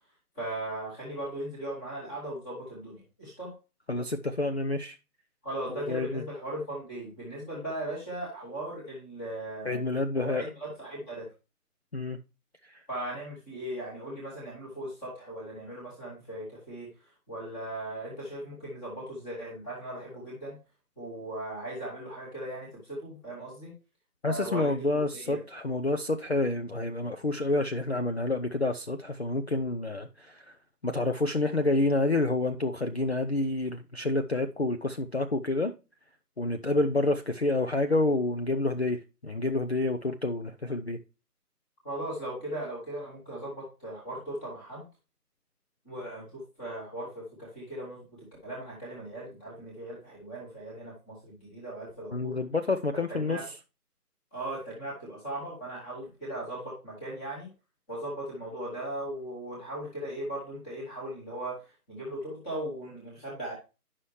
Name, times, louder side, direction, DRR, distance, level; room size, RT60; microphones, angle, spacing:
voice 1, 0.3-3.5 5.4-9.8 10.2-11.3 12.9-20.6 21.0-23.7 24.3-25.4 41.8-44.9 45.8-52.4 53.1-53.4 54.3-57.5 57.9-63.5, right 1 dB, 5° left, 1.0 m, -38 dB
voice 2, 3.9-5.0 5.7-6.2 9.7-10.4 11.9-12.2 12.7-12.8 24.2-30.6 30.8-35.7 36.4-41.0 52.1-53.4, left 2 dB, 45° left, 0.5 m, -28 dB
9.8 x 5.6 x 3.1 m
figure-of-eight pair, 155°, 48 cm